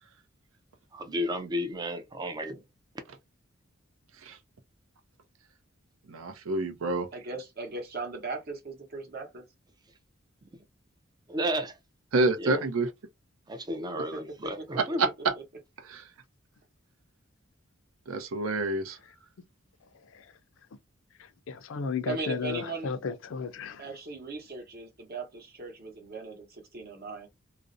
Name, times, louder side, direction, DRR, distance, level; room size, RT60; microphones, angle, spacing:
voice 1, 0.9-2.6 11.3-11.8 12.4-12.6 13.5-15.1, equal, 20° right, 0.4 m, -32 dB
voice 2, 6.1-7.1 12.1-12.9 15.2-15.3 15.9-16.0 18.1-19.0, right 2 dB, 85° right, 0.5 m, -27 dB
voice 3, 7.1-9.4 13.9-14.2 14.7-15.0 15.3-15.4 22.1-22.9 23.8-27.3, right 3 dB, 50° right, 0.9 m, -38 dB
voice 4, 21.5-23.8, left 5 dB, 70° left, 0.4 m, -33 dB
2.4 x 2.0 x 2.5 m
head